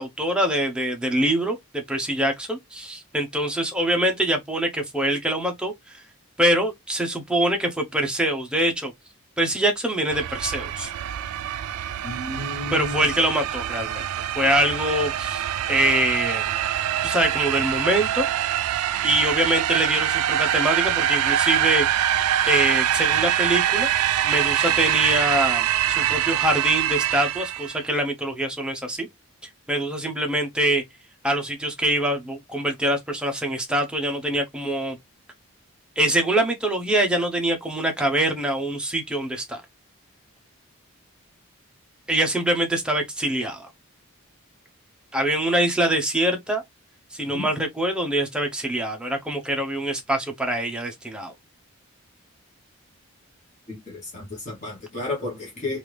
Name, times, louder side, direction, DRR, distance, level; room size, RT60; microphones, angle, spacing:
voice 1, 0.0-6.0 6.4-8.9 9.4-10.9 12.7-14.0 14.4-16.5 17.0-18.2 19.0-22.2 22.4-23.9 24.2-29.1 29.7-30.8 31.2-35.0 36.0-39.6 42.1-43.7 45.1-46.6 47.1-51.3, right 1 dB, 5° right, 0.6 m, -24 dB
sound 1, 10.1-27.8, right 11 dB, 85° right, 0.3 m, -24 dB
voice 2, 12.0-13.2 47.3-47.5 53.7-55.8, left 2 dB, 30° left, 1.1 m, -32 dB
3.3 x 2.5 x 3.1 m
head